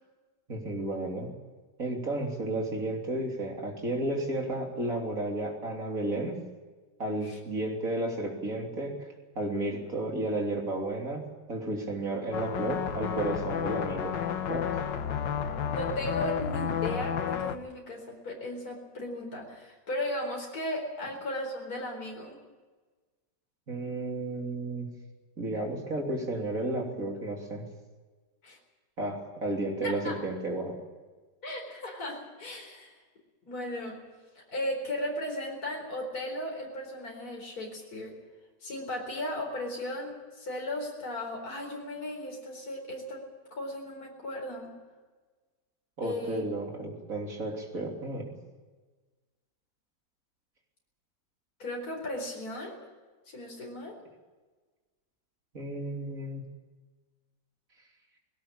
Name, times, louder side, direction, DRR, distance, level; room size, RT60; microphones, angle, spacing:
voice 1, 0.5-1.3 1.8-6.4 7.0-8.9 9.4-11.2 11.5-14.2 14.5-14.7 23.7-24.9 25.4-27.7 29.0-30.8 46.0-48.3 55.5-56.4, right 2 dB, 50° right, 1 dB, 3.6 m, -32 dB
sound 1, 12.3-17.6, left 8 dB, 90° left, 1.8 m, -31 dB
voice 2, 15.7-22.4 28.4-28.6 29.8-30.2 31.4-33.0 33.5-34.0 34.3-38.2 38.6-43.2 43.5-44.7 46.0-46.4 51.6-52.9 53.3-54.0, left 1 dB, 55° left, 0 dB, 4.8 m, -36 dB
20.5 x 17.5 x 8.7 m, 1.3 s
omnidirectional pair, 1.9 m